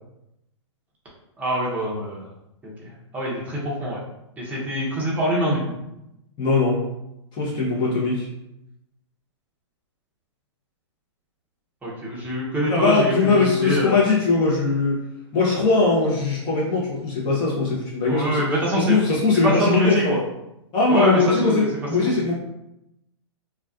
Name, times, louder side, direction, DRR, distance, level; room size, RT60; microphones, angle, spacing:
voice 1, 1.4-2.2 2.6-4.0 4.4-5.8 11.8-14.0 18.1-19.0 19.4-20.2 20.9-21.7 22.0-22.1, right 1 dB, 10° right, -6 dB, 0.7 m, -24 dB
voice 2, 6.4-6.8 7.3-8.3 12.7-15.0 15.3-18.5 18.8-20.2 20.7-22.3, left 3 dB, 30° left, -5 dB, 0.6 m, -20 dB
2.3 x 2.3 x 2.3 m, 0.87 s
hypercardioid pair, 125°, 16 cm